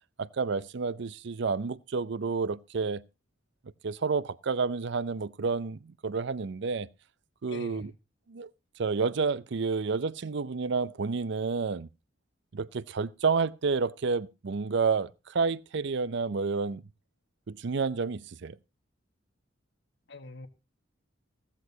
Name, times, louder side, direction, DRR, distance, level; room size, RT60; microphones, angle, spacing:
voice 1, 0.2-3.0 3.8-6.9 7.4-7.9 8.3-8.5 8.8-11.9 12.5-16.8 17.5-18.6, right 4 dB, 65° right, 0.5 m, -30 dB
voice 2, 7.5-7.9 20.1-20.5, left 3 dB, 65° left, 1.5 m, -44 dB
15.5 x 14.0 x 2.8 m
head